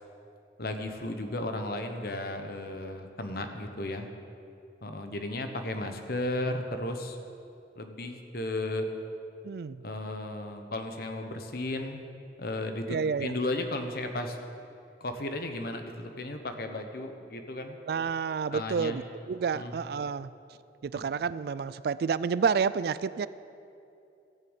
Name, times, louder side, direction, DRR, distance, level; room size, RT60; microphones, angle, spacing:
voice 1, 0.6-4.1 4.8-7.2 7.8-8.8 9.8-12.0 12.4-14.4 15.0-17.8 18.5-19.0 19.5-19.7, left 2 dB, 60° left, 6 dB, 1.1 m, -34 dB
voice 2, 9.4-9.8 12.9-13.3 17.9-20.3 20.8-23.3, right 6 dB, 60° right, 17 dB, 0.3 m, -29 dB
14.5 x 6.7 x 8.1 m, 2.6 s
head